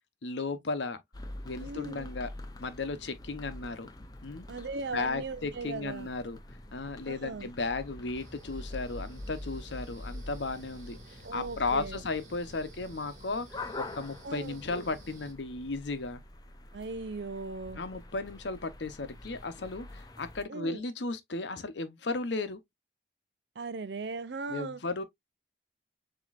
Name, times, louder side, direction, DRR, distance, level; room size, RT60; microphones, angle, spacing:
voice 1, 0.2-1.0 1.4-2.3 2.6-3.9 4.2-4.5 4.9-6.4 6.7-16.2 17.7-22.6 24.5-25.0, left 3 dB, 80° left, 0.8 m, -35 dB
sound 1, 1.1-20.4, left 1 dB, 20° left, 0.6 m, -46 dB
voice 2, 1.6-2.1 4.5-6.1 7.1-7.5 11.2-12.0 14.2-14.6 16.7-17.8 20.5-20.8 23.6-24.8, right 3 dB, 75° right, 0.6 m, -38 dB
sound 2, 8.1-15.3, right 2 dB, 40° right, 2.1 m, -53 dB
7.2 x 2.9 x 2.4 m
head